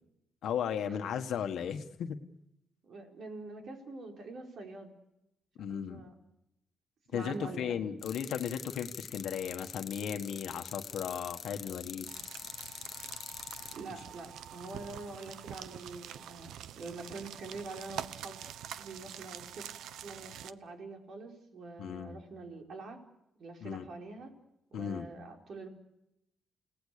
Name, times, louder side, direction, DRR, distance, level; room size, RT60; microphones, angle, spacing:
voice 1, 0.4-2.2 5.6-6.0 7.1-12.1 21.8-22.2 23.6-23.9 24.7-25.1, left 8 dB, 65° left, 6 dB, 1.5 m, -36 dB
voice 2, 2.8-4.9 5.7-6.1 7.1-7.7 13.7-18.4 18.8-19.6 20.0-23.0 23.4-24.3 24.7-25.7, right 3 dB, 50° right, 3 dB, 4.6 m, -45 dB
sound 1, 8.0-13.8, left 6 dB, 40° left, 1.0 m, -45 dB
sound 2, 12.1-20.5, right 10 dB, 80° right, 0.8 m, -46 dB
29.5 x 18.0 x 6.7 m, 0.83 s
cardioid pair, 135°, 0 cm